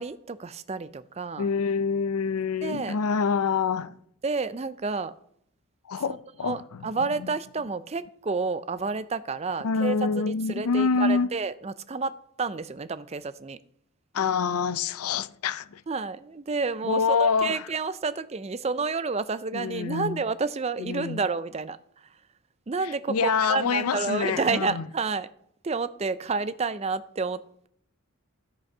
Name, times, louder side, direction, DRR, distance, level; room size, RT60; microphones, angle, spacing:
voice 1, 0.0-1.5 2.6-3.0 4.2-5.1 6.1-6.2 6.4-10.0 10.3-13.6 15.9-21.8 22.7-25.3 25.6-27.7, right 4 dB, 30° right, 0.4 m, -30 dB
voice 2, 1.4-4.0 5.9-6.9 7.2-7.3 9.6-11.3 14.1-15.8 16.8-17.7 19.5-20.2 20.8-21.2 22.8-24.9, left 5 dB, 80° left, 0.5 m, -26 dB
13.0 x 6.2 x 5.4 m
head